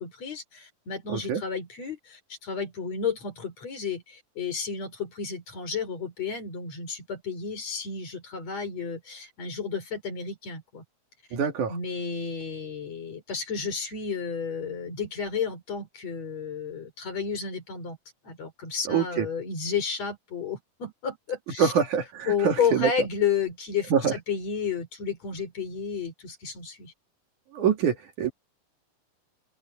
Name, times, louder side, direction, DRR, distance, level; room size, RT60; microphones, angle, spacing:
voice 1, 0.0-10.8 11.7-18.0 18.2-21.7 22.3-26.9, left 6 dB, 50° left, 6.0 m, -32 dB
voice 2, 1.1-1.4 11.3-11.7 18.9-19.3 21.6-22.9 23.9-24.1 27.5-28.3, right 7 dB, 65° right, 3.5 m, -25 dB
open air
omnidirectional pair, 3.9 m